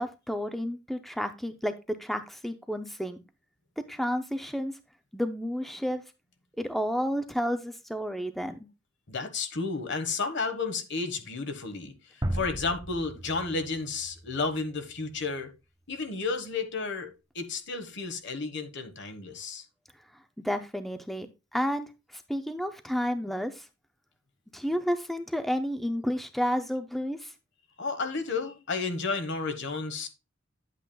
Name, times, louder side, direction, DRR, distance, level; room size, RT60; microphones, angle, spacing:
voice 1, 0.0-3.2 3.9-4.7 5.1-6.0 6.6-8.6 20.4-21.9 22.1-23.7 24.5-27.3, equal, ahead, 0.4 m, -31 dB
voice 2, 9.1-15.5 15.9-19.6 27.8-30.1, left 4 dB, 60° left, 1.2 m, -32 dB
sound 1, 12.2-15.1, right 1 dB, 20° right, 1.1 m, -36 dB
10.5 x 8.2 x 2.3 m
head